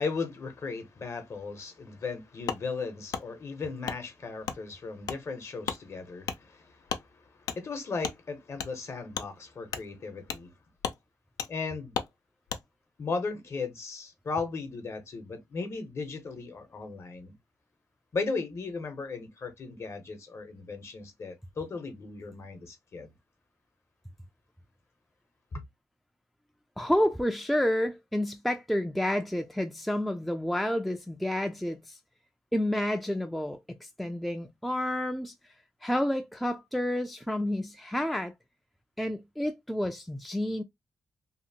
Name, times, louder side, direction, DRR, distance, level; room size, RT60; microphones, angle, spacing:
voice 1, 0.0-10.5 11.5-12.0 13.0-17.4 18.1-23.1 25.5-25.6, left 4 dB, 45° left, 0.8 m, -36 dB
Wood, 2.5-2.6 3.1-3.2 3.8-4.0 4.4-4.6 5.0-5.2 5.6-5.8 6.2-6.4 6.9-7.0 7.5-7.6 8.0-8.2 8.6-8.7 9.1-9.3 9.7-9.9 10.3-10.5 10.8-11.0 11.4-11.5 11.9-12.1 12.5-12.6, left 7 dB, 85° left, 0.4 m, -34 dB
voice 2, 26.8-32.0 32.5-35.3 35.8-38.3 39.0-40.6, left 1 dB, ahead, 0.3 m, -30 dB
2.8 x 2.5 x 2.7 m
cardioid pair, 110°, 6 cm